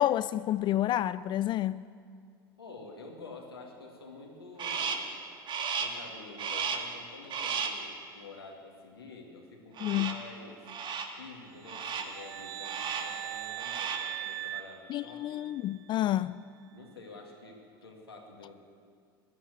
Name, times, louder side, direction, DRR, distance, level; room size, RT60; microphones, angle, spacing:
voice 1, 0.0-1.8 9.8-10.1 14.9-16.4, left 13 dB, 40° left, 0.3 m, -29 dB
voice 2, 2.6-5.2 5.8-10.6 11.2-15.5 16.7-18.6, left 3 dB, 90° left, 2.3 m, -49 dB
Crow, 4.6-5.1 5.5-6.0 6.4-7.0 7.3-7.9 9.8-10.3 10.7-11.2 11.7-12.2 12.6-13.2 13.5-14.1, right 5 dB, 40° right, 1.7 m, -34 dB
sound 1, 11.6-15.7, right 14 dB, 75° right, 0.4 m, -40 dB
15.0 x 11.5 x 8.3 m
hypercardioid pair, 75°, 12 cm